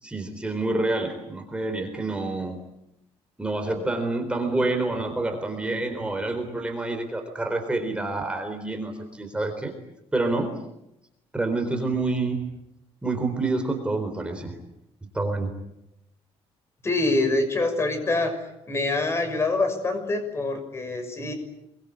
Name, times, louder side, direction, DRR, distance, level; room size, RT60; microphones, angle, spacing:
voice 1, 0.0-2.6 3.4-9.7 10.1-10.5 11.3-12.5 13.0-14.5 15.1-15.5 17.2-17.4, right 2 dB, 10° right, 4 dB, 4.1 m, -27 dB
voice 2, 16.8-18.3 18.7-21.3, left 2 dB, 25° left, 8 dB, 6.2 m, -25 dB
26.0 x 23.5 x 8.6 m, 0.85 s
cardioid pair, 140°, 11 cm